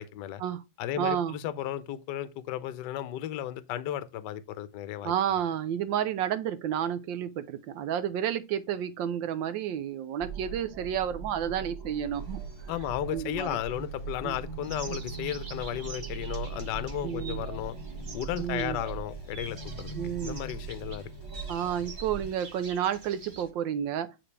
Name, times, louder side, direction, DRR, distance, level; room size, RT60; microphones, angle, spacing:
voice 1, 0.0-0.4 0.8-5.1 12.7-17.7 18.1-21.1, left 11 dB, 70° left, 1.1 m, -34 dB
voice 2, 1.0-1.4 5.0-12.4 13.1-13.9 14.2-14.4 14.9-15.0 17.0-17.4 18.4-18.8 19.9-20.4 21.5-24.1, right 9 dB, 75° right, 1.2 m, -31 dB
sound 1, 10.2-22.3, right 4 dB, 20° right, 1.2 m, -40 dB
sound 2, 12.1-23.5, left 2 dB, 20° left, 1.1 m, -54 dB
sound 3, 14.6-18.9 19.3-23.4, right 4 dB, 60° right, 0.5 m, -47 dB
8.9 x 4.0 x 3.2 m
omnidirectional pair, 2.3 m